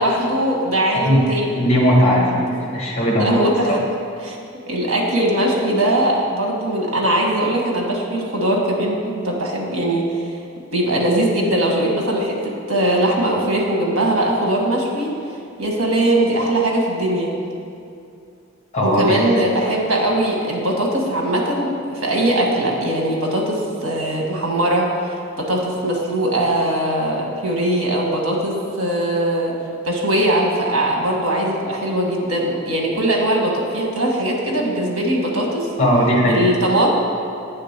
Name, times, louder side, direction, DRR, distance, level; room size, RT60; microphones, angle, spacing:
voice 1, 0.0-1.6 3.2-3.8 4.2-4.4 4.7-10.3 10.7-12.4 12.7-15.1 15.6-17.3 18.8-29.5 29.8-35.7 36.3-36.9, right 1 dB, 85° right, -1 dB, 1.5 m, -20 dB
voice 2, 1.6-2.4 2.7-3.3 18.7-19.2 35.8-36.4, equal, 30° left, -3 dB, 1.5 m, -17 dB
8.7 x 3.8 x 6.6 m, 2.5 s
head